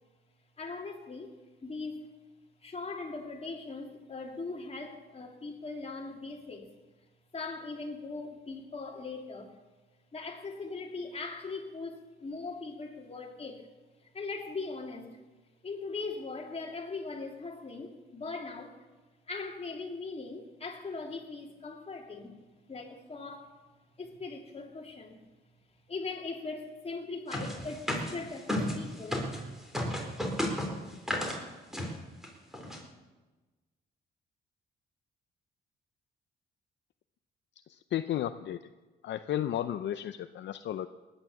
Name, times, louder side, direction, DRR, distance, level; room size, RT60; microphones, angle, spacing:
voice 1, 0.6-2.2 2.6-6.7 7.3-9.5 10.1-13.7 14.1-15.2 15.6-18.8 19.3-22.4 22.7-23.6 24.0-25.3 25.9-29.2, left 3 dB, 30° left, 2.9 m, -40 dB
sound 1, 27.3-29.4 29.7-31.4 31.7-31.9 32.2-32.3 32.5-32.8, equal, ahead, 4.2 m, -32 dB
voice 2, 37.7-38.6 39.0-40.9, left 11 dB, 65° left, 0.6 m, -33 dB
18.5 x 10.5 x 7.2 m
cardioid pair, 90°, 20 cm